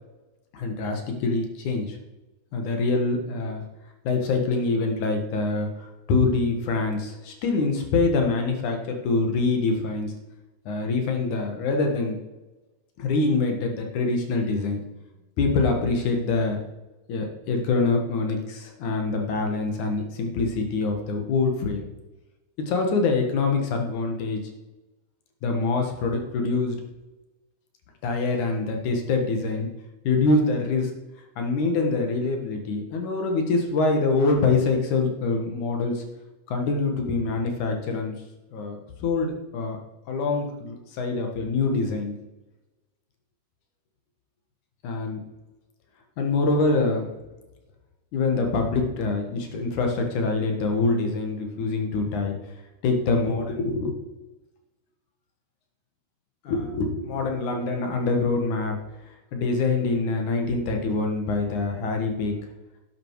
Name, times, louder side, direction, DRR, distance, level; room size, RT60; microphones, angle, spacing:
voice 1, 0.5-2.0 2.5-3.6 4.0-10.1 10.7-12.2 13.0-14.8 15.4-16.6 17.1-21.8 22.6-24.4 25.4-26.8 28.0-29.7 30.0-30.9 31.4-36.1 36.5-38.1 38.5-39.8 40.1-42.1 44.8-45.2 46.2-47.1 48.1-52.4 52.8-54.0 56.4-58.8 59.3-62.3, left 3 dB, 60° left, 3 dB, 2.7 m, -25 dB
11.5 x 9.1 x 4.7 m, 1.1 s
omnidirectional pair, 4.4 m